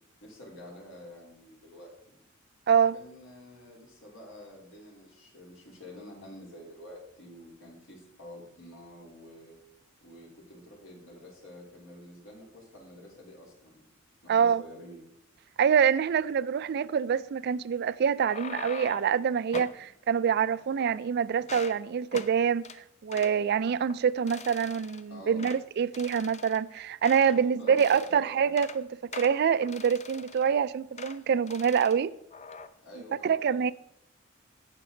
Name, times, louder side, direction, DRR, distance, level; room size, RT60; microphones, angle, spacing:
voice 1, 0.2-2.2 2.9-9.5 10.0-13.8 14.2-15.0 23.1-23.2 25.1-25.5 27.3-28.5 32.8-33.7, left 1 dB, 70° left, 3.5 m, -48 dB
voice 2, 14.3-14.6 15.6-22.6 23.0-28.9 29.1-32.1 33.2-33.7, right 7 dB, 55° right, 0.3 m, -25 dB
sound 1, 18.0-19.2 19.5-19.8 20.4-21.1 21.4-21.8 22.1-22.3 22.6-22.8 23.1-23.3 23.8-24.0 24.3-25.0 25.4-25.6 25.9-27.4 27.7-28.2 28.4-28.8 29.1-30.5 31.0-31.2 31.5-32.0 32.3-32.7, left 5 dB, 35° left, 0.6 m, -43 dB
16.5 x 6.1 x 3.9 m
head